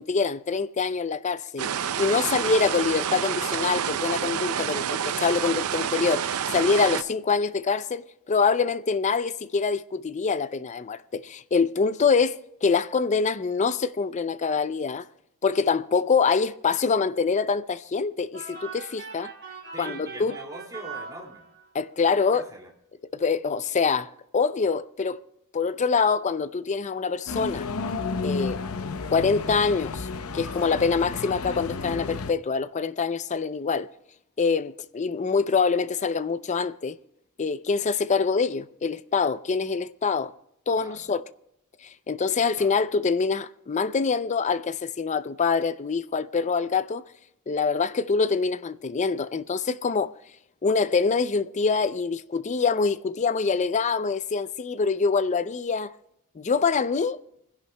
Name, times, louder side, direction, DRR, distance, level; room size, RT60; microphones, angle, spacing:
voice 1, 0.0-15.0 15.4-19.3 19.8-20.3 21.7-22.4 23.1-25.2 25.5-27.7 28.2-28.6 29.1-30.1 30.3-33.9 34.4-37.0 37.4-40.3 40.7-41.3 41.8-47.0 47.5-50.1 50.6-55.9 56.4-57.2, left 5 dB, 35° left, 0.5 m, -25 dB
sound 1, 1.6-7.0, right 8 dB, 80° right, 0.5 m, -28 dB
sound 2, 18.3-21.8, right 5 dB, 55° right, 4.4 m, -41 dB
voice 2, 19.7-21.5 22.0-22.7 40.8-41.1 42.6-42.7, right 1 dB, 15° right, 2.3 m, -42 dB
sound 3, 27.3-32.3, left 4 dB, 80° left, 0.7 m, -32 dB
28.0 x 11.0 x 2.2 m
head